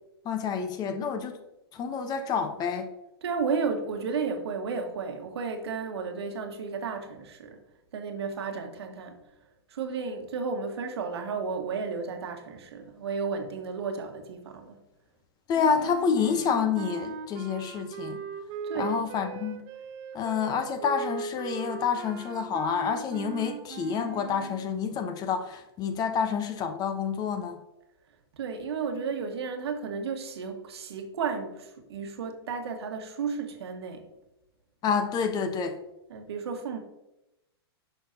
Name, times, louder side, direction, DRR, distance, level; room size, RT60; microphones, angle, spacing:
voice 1, 0.2-1.4 1.7-2.9 15.5-18.2 18.7-19.6 20.1-27.6 34.8-35.8, left 6 dB, 30° left, 1.0 m, -28 dB
voice 2, 3.2-7.6 7.9-9.2 9.7-14.8 18.6-19.0 28.3-34.1 36.1-36.8, right 5 dB, 75° right, 1.6 m, -33 dB
sound 1, 15.5-24.7, right 7 dB, 40° right, 0.8 m, -38 dB
11.0 x 6.1 x 2.8 m
hypercardioid pair, 120°, 14 cm